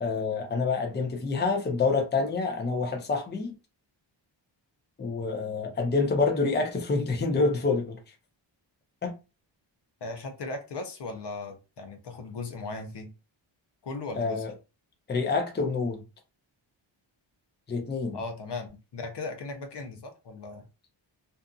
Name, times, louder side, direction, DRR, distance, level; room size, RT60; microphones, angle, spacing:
voice 1, 0.0-3.5 5.0-8.0 9.0-9.1 14.2-14.5 15.1-16.0 17.7-18.2, left 4 dB, 20° left, 0.6 m, -27 dB
voice 2, 10.0-13.1 13.8-14.4 18.1-20.7, left 3 dB, 60° left, 0.7 m, -37 dB
2.6 x 2.5 x 2.3 m
wide cardioid pair, 95°, 47 cm